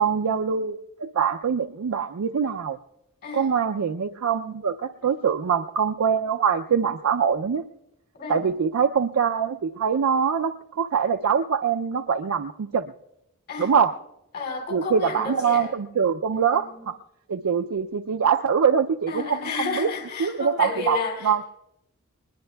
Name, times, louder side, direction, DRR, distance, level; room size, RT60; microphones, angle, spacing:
voice 1, 0.0-2.8 3.3-7.6 8.3-12.8 13.6-13.9 14.7-16.9 17.3-19.9 20.2-21.4, right 7 dB, 80° right, 7 dB, 0.4 m, -24 dB
voice 2, 8.1-8.5 13.5-13.7 14.3-15.7 16.3-16.9 19.1-21.4, left 4 dB, 50° left, 3 dB, 3.3 m, -32 dB
20.5 x 20.5 x 2.3 m, 0.86 s
head